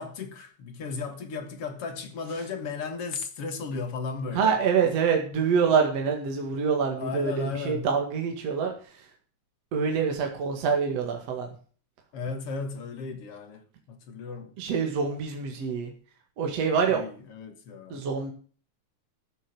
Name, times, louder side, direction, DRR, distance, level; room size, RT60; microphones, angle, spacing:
voice 1, 0.0-4.5 7.0-7.9 12.1-14.6 16.9-18.1, left 4 dB, 55° left, 2.3 m, -35 dB
voice 2, 4.3-9.1 9.7-11.5 14.6-15.9 16.4-17.0 17.9-18.3, right 6 dB, 60° right, 2.9 m, -26 dB
14.0 x 6.7 x 7.8 m
omnidirectional pair, 3.4 m